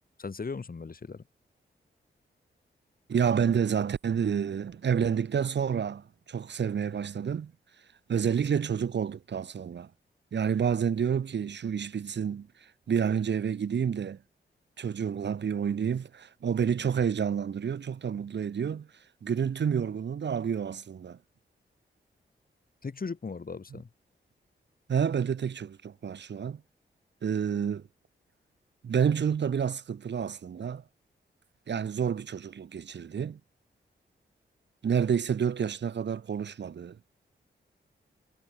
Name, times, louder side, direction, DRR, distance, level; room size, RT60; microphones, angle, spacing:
voice 1, 0.2-1.2 22.8-23.9, left 4 dB, 45° left, 4.3 m, -37 dB
voice 2, 3.1-7.5 8.1-9.9 10.3-14.2 14.8-18.9 19.2-21.2 24.9-26.6 27.2-27.9 28.8-30.8 31.7-33.4 34.8-37.0, right 7 dB, 65° right, 1.1 m, -29 dB
cardioid pair, 65°, 20 cm